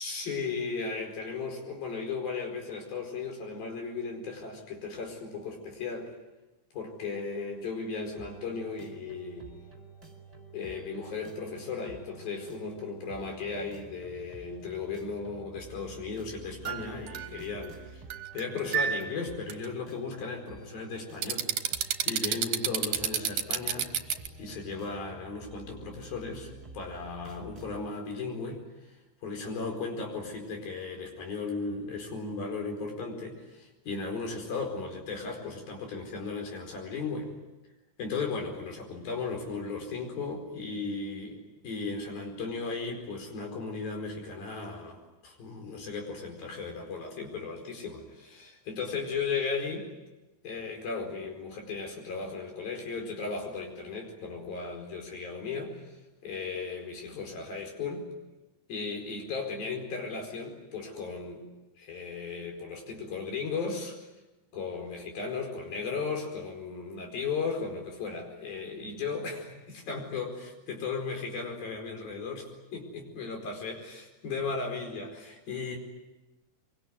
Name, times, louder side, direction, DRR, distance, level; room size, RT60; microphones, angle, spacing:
voice 1, 0.0-6.1 6.7-9.5 10.5-18.0 18.3-21.5 22.1-23.9 24.4-28.9 29.2-37.3 38.0-49.9 50.4-55.8 56.2-58.1 58.7-61.4 61.8-64.0 64.5-73.8 74.2-75.8, left 4 dB, 70° left, 3 dB, 6.4 m, -36 dB
sound 1, 8.2-27.9, right 3 dB, 10° right, 4.0 m, -50 dB
sound 2, 16.7-17.7 18.1-19.2 19.5-19.7 21.2-24.3, right 9 dB, 65° right, 2.7 m, -29 dB
24.5 x 23.5 x 9.6 m, 1.1 s
omnidirectional pair, 4.3 m